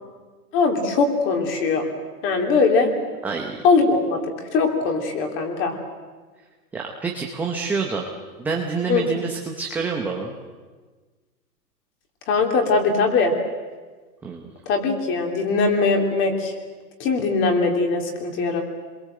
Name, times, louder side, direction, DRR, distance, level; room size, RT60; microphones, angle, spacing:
voice 1, 0.5-1.9 2.2-2.9 3.6-4.2 4.5-5.7 8.9-9.0 12.3-13.3 14.7-16.5 17.0-18.6, left 4 dB, 25° left, 3 dB, 3.2 m, -21 dB
voice 2, 3.2-3.6 6.7-8.1 8.4-10.3 14.2-14.5, right 4 dB, 5° right, 0 dB, 0.7 m, -27 dB
27.0 x 22.0 x 7.7 m, 1.4 s
hypercardioid pair, 160°, 47 cm